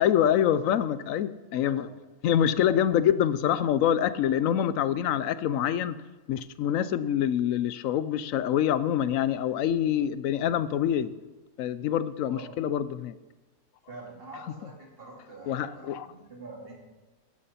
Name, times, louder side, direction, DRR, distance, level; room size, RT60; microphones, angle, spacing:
voice 1, 0.0-1.9 2.2-6.0 6.3-11.1 11.6-13.2 15.5-16.1, left 10 dB, 75° left, 1.0 m, -25 dB
voice 2, 13.9-16.7, right 2 dB, 40° right, 2.7 m, -45 dB
12.5 x 11.0 x 4.2 m
omnidirectional pair, 1.4 m